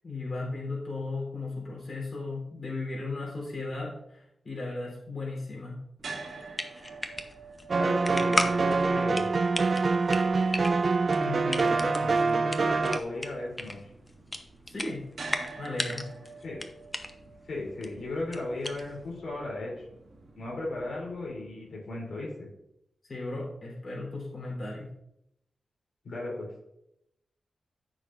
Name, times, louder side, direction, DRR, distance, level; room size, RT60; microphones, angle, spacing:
voice 1, 0.0-5.8 14.7-15.1 15.6-16.1 23.0-24.9, left 2 dB, 45° left, -3 dB, 3.5 m, -36 dB
sound 1, 6.0-22.1, right 3 dB, 60° right, 1.9 m, -48 dB
sound 2, 6.2-19.2, left 1 dB, 20° left, 0.7 m, -37 dB
sound 3, 7.7-13.0, right 4 dB, 45° right, 0.4 m, -25 dB
voice 2, 7.8-9.3 11.2-13.9 16.4-16.6 17.5-19.9 20.4-22.5 26.0-26.5, left 2 dB, 80° left, -3 dB, 3.3 m, -36 dB
14.0 x 6.4 x 2.5 m, 0.82 s
wide cardioid pair, 145°, 0 cm